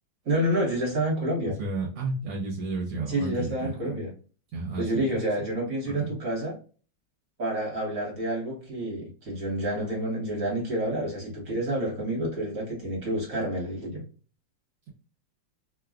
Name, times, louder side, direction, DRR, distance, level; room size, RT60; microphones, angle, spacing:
voice 1, 0.2-1.5 3.1-4.1 4.8-6.5 7.4-14.0, right 1 dB, 50° right, 1.5 m, -29 dB
voice 2, 1.4-3.9 4.5-5.1 5.8-6.1, right 3 dB, 65° right, 1.3 m, -32 dB
3.3 x 2.3 x 2.4 m
omnidirectional pair, 2.1 m